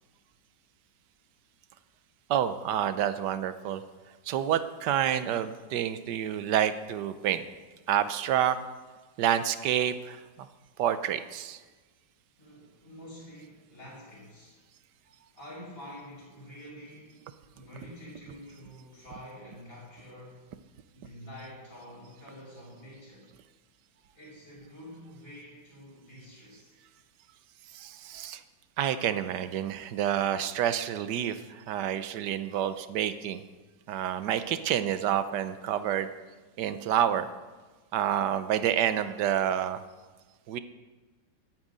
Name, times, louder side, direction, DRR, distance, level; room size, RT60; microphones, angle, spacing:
voice 1, 2.3-3.8 4.3-7.4 7.9-8.6 9.2-10.5 10.8-11.6 27.7-28.4 28.8-33.4 33.9-36.1 36.6-37.3 37.9-39.8 40.5-40.6, right 10 dB, 70° right, 12 dB, 1.3 m, -28 dB
voice 2, 12.4-14.6 15.3-17.3 17.5-20.4 20.9-23.3 24.1-26.7, equal, 30° left, -5 dB, 5.4 m, -47 dB
9.4 x 9.1 x 8.9 m, 1.3 s
omnidirectional pair, 2.0 m